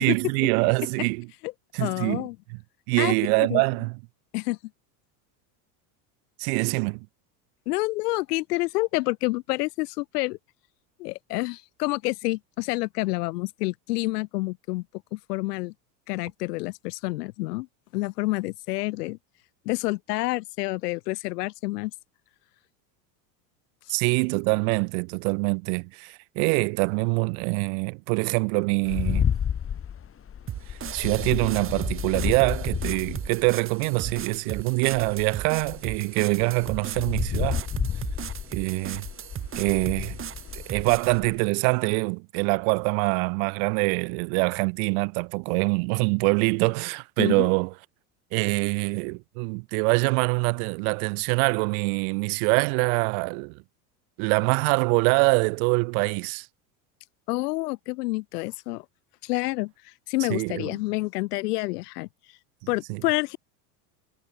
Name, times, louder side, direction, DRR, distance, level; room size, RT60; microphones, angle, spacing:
voice 1, 0.0-1.3 1.7-2.2 2.9-4.0 6.4-7.1 23.9-29.2 30.7-37.7 38.5-39.1 39.6-40.2 40.5-47.7 48.3-53.5 54.2-56.5 60.3-60.7 62.9-63.0, right 36 dB, 65° right, 0.9 m, -24 dB
voice 2, 1.8-2.4 3.0-3.1 3.5-3.6 4.3-4.6 7.7-10.4 11.0-14.8 15.1-15.7 16.1-17.7 17.9-19.2 19.7-21.9 47.2-47.5 57.3-58.9 59.2-59.7 60.1-62.1 62.7-63.4, left 21 dB, 80° left, 3.7 m, -28 dB
sound 1, 28.8-34.4 34.9-41.4, left 8 dB, 30° left, 6.3 m, -31 dB
sound 2, 30.5-41.2, right 10 dB, 25° right, 1.5 m, -37 dB
supercardioid pair, 130°, 46 cm